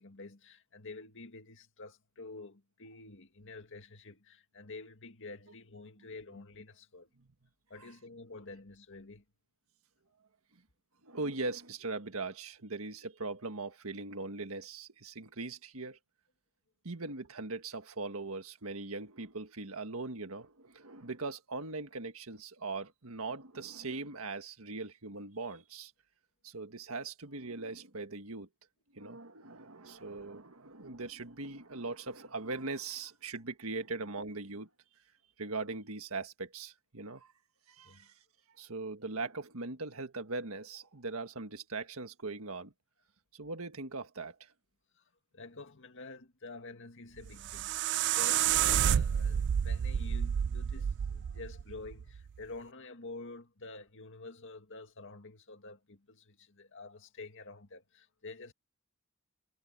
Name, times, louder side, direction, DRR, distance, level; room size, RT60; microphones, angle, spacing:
voice 1, 0.0-7.1 7.7-9.2 29.9-30.0 37.8-38.1 45.0-45.1 45.3-58.5, left 3 dB, 60° left, 2.0 m, -48 dB
voice 2, 11.0-16.0 16.8-25.9 26.4-28.5 28.9-34.7 35.4-37.3 37.7-38.1 38.6-42.7 43.3-44.5, right 3 dB, 70° right, 1.7 m, -40 dB
sound 1, 47.2-52.3, right 9 dB, 55° right, 0.3 m, -30 dB
head